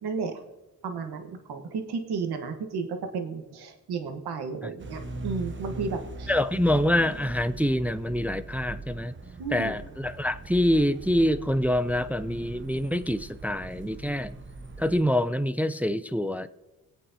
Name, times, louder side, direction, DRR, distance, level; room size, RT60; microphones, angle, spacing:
voice 1, 0.0-0.4 0.8-2.9 3.1-6.3 9.4-9.7, right 5 dB, 85° right, 5 dB, 1.3 m, -33 dB
sound 1, 4.8-15.0, right 2 dB, 30° right, 0.9 m, -41 dB
voice 2, 6.3-9.1 9.5-14.4 14.8-16.5, left 1 dB, 5° right, 13 dB, 0.3 m, -26 dB
22.5 x 8.5 x 2.7 m, 1.0 s
cardioid pair, 95°, 38 cm